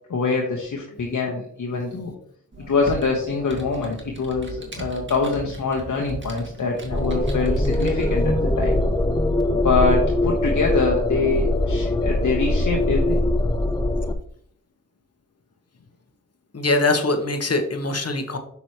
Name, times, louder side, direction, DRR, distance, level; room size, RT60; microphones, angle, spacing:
voice 1, 0.1-2.1 2.7-8.8 9.5-13.3, left 4 dB, 65° left, -1 dB, 1.3 m, -24 dB
Computer keyboard, 2.5-8.3, right 3 dB, 35° right, 1.9 m, -38 dB
sound 1, 6.9-14.1, left 1 dB, 10° left, 0.8 m, -22 dB
voice 2, 16.5-18.4, left 2 dB, 50° left, 5 dB, 1.4 m, -22 dB
7.0 x 6.1 x 3.0 m, 0.62 s
cardioid pair, 50°, 32 cm